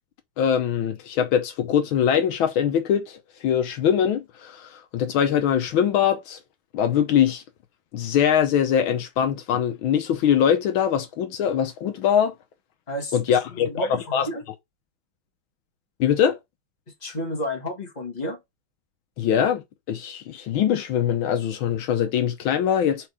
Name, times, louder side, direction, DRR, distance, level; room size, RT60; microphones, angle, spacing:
voice 1, 0.4-6.4 6.7-7.4 7.9-12.3 13.1-14.3 16.0-16.4 19.2-23.1, left 9 dB, 75° left, 1.6 m, -22 dB
voice 2, 13.6-14.4 17.0-18.4, equal, 20° left, 1.8 m, -31 dB
4.7 x 4.4 x 4.8 m
omnidirectional pair, 2.3 m